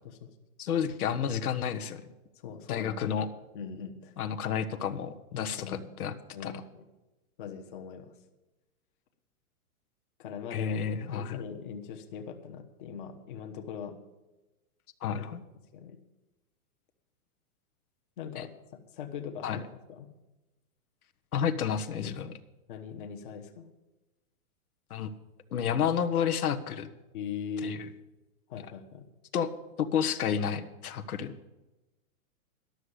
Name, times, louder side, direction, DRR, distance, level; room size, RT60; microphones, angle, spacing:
voice 1, 0.6-2.0 2.7-3.3 4.2-6.1 6.4-6.5 10.5-11.4 15.0-15.4 18.4-18.5 19.4-19.6 21.3-22.3 24.9-25.1 25.5-26.9 27.6-27.8 29.3-29.5 29.8-31.3, left 8 dB, 85° left, 9 dB, 1.2 m, -30 dB
voice 2, 2.3-3.0 3.5-4.1 5.4-5.9 6.3-6.8 7.4-8.1 10.2-10.8 11.1-14.0 15.2-15.3 15.7-16.0 18.2-18.5 18.9-19.6 19.9-20.1 22.7-23.7 27.1-27.8 28.5-29.0, left 7 dB, 35° left, 5 dB, 1.1 m, -40 dB
12.0 x 6.6 x 9.6 m, 1.1 s
hypercardioid pair, 170°, 43 cm